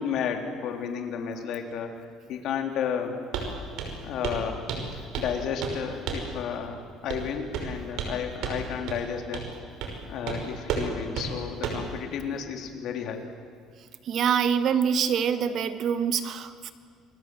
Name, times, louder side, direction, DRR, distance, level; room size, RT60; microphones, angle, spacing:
voice 1, 0.0-1.9 2.3-3.1 4.0-4.7 4.9-9.4 10.0-13.3, left 7 dB, 60° left, 4 dB, 3.4 m, -32 dB
Walk footsteps, 3.3-3.5 3.8-4.0 4.2-4.4 4.7-5.3 5.6-5.8 6.1-6.3 7.1-7.3 7.5-8.2 8.4-8.6 8.9-9.0 9.3-9.5 9.8-10.0 10.3-10.4 10.7-10.9 11.2-11.3 11.6-11.9, right 6 dB, 70° right, 5.2 m, -31 dB
voice 2, 14.0-16.7, right 7 dB, 50° right, 10 dB, 1.5 m, -25 dB
28.0 x 22.0 x 7.9 m, 2.2 s
cardioid pair, 135°, 0 cm